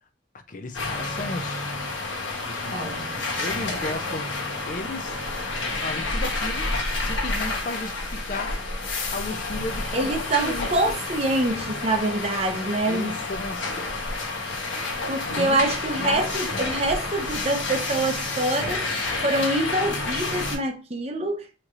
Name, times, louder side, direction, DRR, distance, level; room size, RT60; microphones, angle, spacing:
voice 1, 0.5-1.9 2.5-5.2 5.6-6.7 7.0-8.6 9.1-10.7 12.9-14.1 14.5-14.6 15.2-15.6 16.0-16.3, left 2 dB, 40° left, 0.4 m, -35 dB
sound 1, 0.7-20.6, left 2 dB, 75° left, 1.1 m, -29 dB
voice 2, 2.7-3.1 9.9-13.2 15.1-21.5, right 2 dB, 30° right, 0.6 m, -25 dB
4.3 x 3.0 x 2.5 m
head